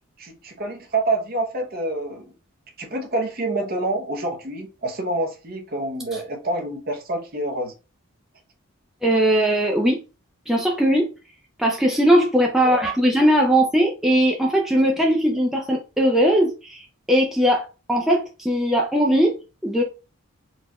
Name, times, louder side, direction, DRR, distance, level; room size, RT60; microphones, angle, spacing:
voice 1, 0.2-2.3 2.8-7.7 12.6-12.8, right 2 dB, 45° right, 0.9 m, -27 dB
voice 2, 9.0-10.0 10.5-11.1 11.6-19.8, equal, ahead, 0.4 m, -19 dB
4.0 x 2.4 x 3.0 m
head